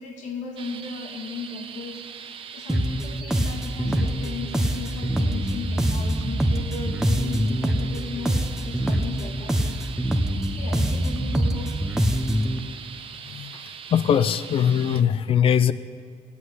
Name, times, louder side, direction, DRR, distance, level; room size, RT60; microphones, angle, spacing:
voice 1, 0.0-9.8 10.5-11.9, left 4 dB, 75° left, 1 dB, 2.3 m, -36 dB
sound 1, 0.6-15.0, right 7 dB, 45° right, 0.8 m, -41 dB
sound 2, 2.7-12.6, right 1 dB, 5° right, 0.8 m, -24 dB
voice 2, 13.9-15.7, left 8 dB, 45° left, 16 dB, 0.5 m, -21 dB
16.0 x 8.3 x 9.7 m, 2.3 s
cardioid pair, 155°, 12 cm